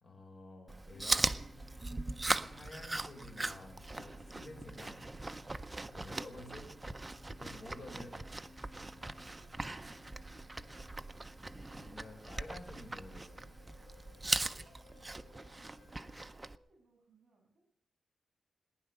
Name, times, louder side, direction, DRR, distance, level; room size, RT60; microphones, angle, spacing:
voice 1, 0.0-1.3 2.4-5.0 5.9-6.7 7.4-8.3 11.7-13.5, left 2 dB, 50° left, 4 dB, 4.0 m, -51 dB
Chewing mastication, 0.7-16.6, right 2 dB, 15° right, 0.6 m, -39 dB
sound 1, 0.9-16.3, left 5 dB, 65° left, 1.0 m, -61 dB
voice 2, 9.0-10.2 10.6-10.8 14.4-15.4 16.3-17.7, right 3 dB, 55° right, 2 dB, 7.6 m, -68 dB
19.5 x 10.5 x 6.8 m, 0.69 s
wide cardioid pair, 145°, 0 cm